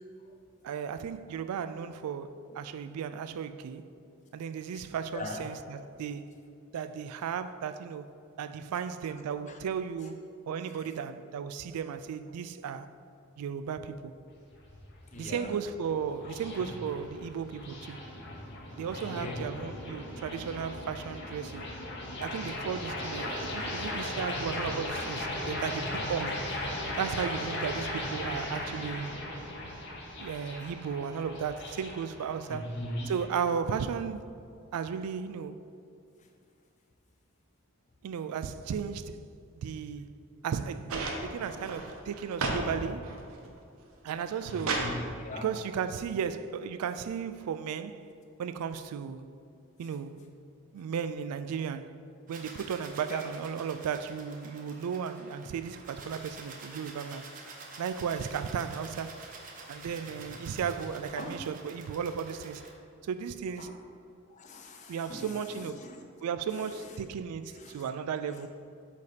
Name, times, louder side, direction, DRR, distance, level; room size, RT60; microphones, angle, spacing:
voice 1, 0.6-3.9 4.3-6.2 6.7-8.1 8.4-12.9 13.4-14.1 15.1-18.0 18.8-21.7 22.2-26.4 27.0-29.1 30.2-32.7 33.1-34.4 34.7-35.6 38.0-39.2 39.6-40.1 40.4-43.2 44.0-44.9 45.4-48.1 48.4-49.3 49.8-50.2 50.7-51.9 52.3-57.3 57.8-59.2 59.7-62.6 63.0-63.7 64.9-65.8 66.2-68.5, right 7 dB, 90° right, 0.3 m, -35 dB
voice 2, 5.1-5.5 9.1-9.2 9.5-9.6 10.7-10.9 15.1-15.6 16.2-16.3 16.6-16.8 19.0-19.4 25.7-26.0 32.5-33.2 36.2-36.3 44.5-45.5 53.1-53.3 59.9-60.4 61.1-61.4 63.6-63.8 64.3-66.0 66.5-67.0 67.5-67.9 68.3-68.5, left 1 dB, 30° left, 0.5 m, -41 dB
sound 1, 14.3-33.3, left 1 dB, 50° left, 0.9 m, -38 dB
sound 2, 40.9-42.7 43.0-43.6 44.1-45.0 46.2-46.3, right 3 dB, 70° right, 0.7 m, -34 dB
sound 3, 52.3-62.7, right 3 dB, 35° right, 0.6 m, -48 dB
8.2 x 2.8 x 5.0 m
head